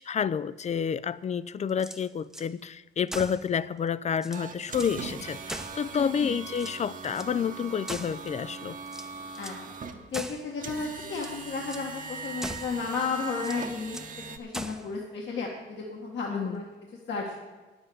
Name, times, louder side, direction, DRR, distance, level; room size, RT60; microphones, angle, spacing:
voice 1, 0.0-8.8 16.3-16.6, left 7 dB, 35° left, 18 dB, 0.4 m, -29 dB
sound 1, 1.7-2.5 3.1-3.5 3.9-4.0 4.2-5.0 5.5-6.2 6.5-7.3 7.9-8.4 8.9-9.6 10.1-10.5 11.0-11.4 11.7-11.9 12.4-12.8 13.4-14.1 14.5-14.9, right 1 dB, ahead, 0.8 m, -40 dB
sound 2, 4.3-14.4, right 4 dB, 45° right, 1.2 m, -41 dB
voice 2, 5.9-6.4 9.4-16.6 17.1-17.3, left 4 dB, 65° left, -2 dB, 1.7 m, -33 dB
9.7 x 7.9 x 7.8 m, 1.3 s
cardioid pair, 90°, 20 cm